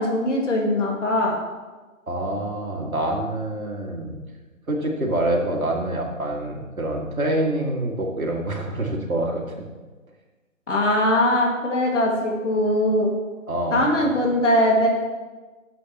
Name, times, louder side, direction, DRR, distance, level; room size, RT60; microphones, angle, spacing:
voice 1, 0.0-1.3 10.7-13.1 13.7-14.9, left 1 dB, 60° left, -1 dB, 2.0 m, -21 dB
voice 2, 2.1-4.1 4.7-9.7 13.5-14.1, right 1 dB, 80° right, 0 dB, 2.0 m, -26 dB
13.5 x 7.5 x 2.9 m, 1.3 s
figure-of-eight pair, 145°, 41 cm